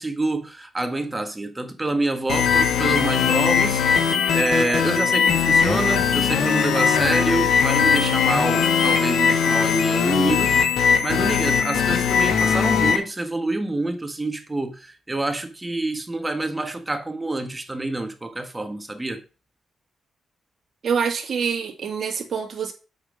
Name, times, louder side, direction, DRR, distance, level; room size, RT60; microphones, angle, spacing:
voice 1, 0.0-19.2, right 2 dB, 20° right, 1.6 m, -27 dB
sound 1, 2.3-13.0, left 6 dB, 85° left, 1.3 m, -20 dB
voice 2, 20.8-22.7, right 6 dB, 60° right, 2.3 m, -25 dB
8.0 x 5.7 x 5.1 m
cardioid pair, 75°, 0 cm